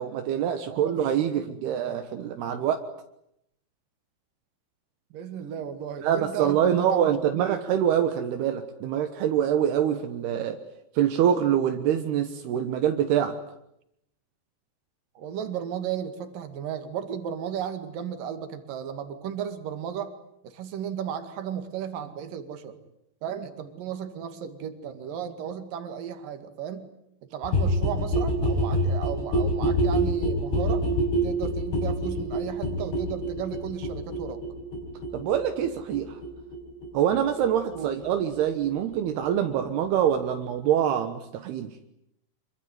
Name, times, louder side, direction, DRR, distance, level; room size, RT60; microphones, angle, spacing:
voice 1, 0.0-2.8 6.0-10.6 10.9-13.4 35.1-36.2 36.9-41.7, right 9 dB, 80° right, 7 dB, 3.3 m, -25 dB
voice 2, 0.7-1.0 1.4-1.5 5.1-7.6 15.2-20.2 20.4-22.8 23.2-26.9 27.3-30.9 31.2-34.4 37.7-38.0, right 8 dB, 60° right, 9 dB, 3.6 m, -34 dB
sound 1, 27.4-39.0 39.2-39.3 39.5-39.6 39.8-39.9 40.1-40.2 40.4-40.5 40.7-40.8, equal, 85° left, 7.3 m, -27 dB
26.0 x 23.5 x 9.6 m, 0.79 s
omnidirectional pair, 4.6 m